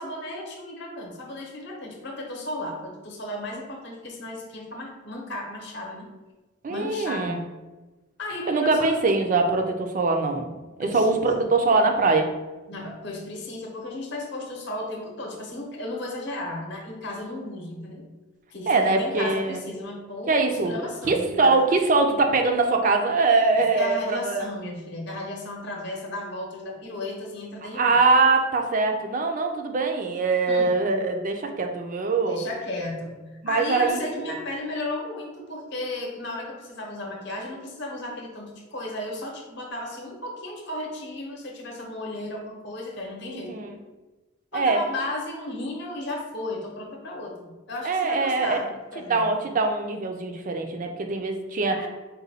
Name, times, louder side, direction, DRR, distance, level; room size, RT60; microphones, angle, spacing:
voice 1, 0.0-6.1 6.7-7.5 8.2-9.0 10.8-11.3 12.7-18.0 18.5-21.6 23.5-28.0 30.5-30.7 32.2-43.7 44.5-49.3 51.7-51.9, left 1 dB, 55° left, -1 dB, 0.8 m, -34 dB
voice 2, 6.6-7.4 8.5-12.3 18.7-19.6 20.3-20.7 21.0-24.5 27.7-32.4 33.4-34.0 43.3-43.7 44.5-44.8 47.8-48.6 49.1-51.9, right 3 dB, 40° right, 4 dB, 0.4 m, -23 dB
4.0 x 2.2 x 4.1 m, 1.2 s
head